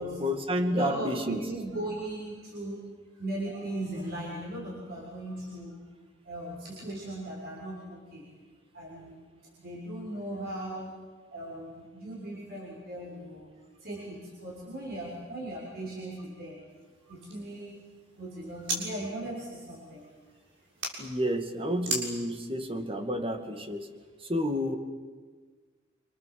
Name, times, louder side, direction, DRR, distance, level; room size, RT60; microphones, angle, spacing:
voice 1, 0.0-1.5 21.0-23.9 24.2-24.8, equal, 30° right, 6 dB, 2.2 m, -30 dB
voice 2, 0.7-2.9 3.1-5.8 6.2-8.3 8.7-9.2 9.6-10.9 11.3-13.5 13.8-16.6 17.1-17.8 18.1-20.4, right 1 dB, 55° right, -4 dB, 6.7 m, -38 dB
sound 1, 16.7-18.8 19.2-20.9 21.8-22.1, right 2 dB, 80° right, 6.8 m, -38 dB
27.5 x 27.0 x 7.8 m, 1.5 s
head